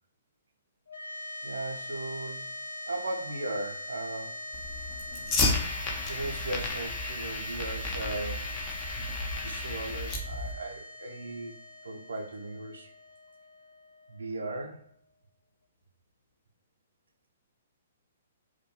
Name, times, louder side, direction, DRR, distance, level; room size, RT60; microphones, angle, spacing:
sound 1, 0.9-15.3, left 1 dB, 85° left, 0.4 m, -42 dB
voice 1, 1.4-2.5 2.9-4.5 4.8-4.9 6.0-8.5 9.4-11.5 11.8-12.9 14.1-14.8, right 2 dB, 75° right, 3 dB, 0.4 m, -37 dB
Fire, 4.5-10.5, left 3 dB, 30° left, 0.5 m, -33 dB
2.2 x 2.1 x 2.8 m, 0.65 s
figure-of-eight pair, 125°, 0 cm